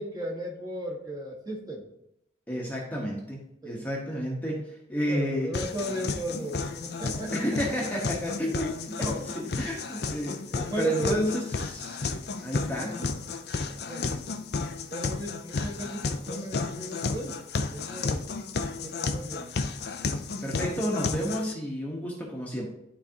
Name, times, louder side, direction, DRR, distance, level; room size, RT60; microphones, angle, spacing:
voice 1, 0.0-1.9 3.6-3.9 5.1-7.6 9.0-9.2 10.7-11.3 12.8-13.1 13.6-14.2 14.9-17.4 17.7-18.2 18.5-19.5, right 1 dB, 20° right, -3 dB, 1.3 m, -35 dB
voice 2, 2.5-5.5 7.3-12.0 12.4-13.0 20.4-22.7, equal, 10° left, -4 dB, 1.0 m, -31 dB
sound 1, 5.5-21.5, left 4 dB, 55° left, 0.5 m, -33 dB
11.5 x 4.1 x 2.8 m, 0.81 s
head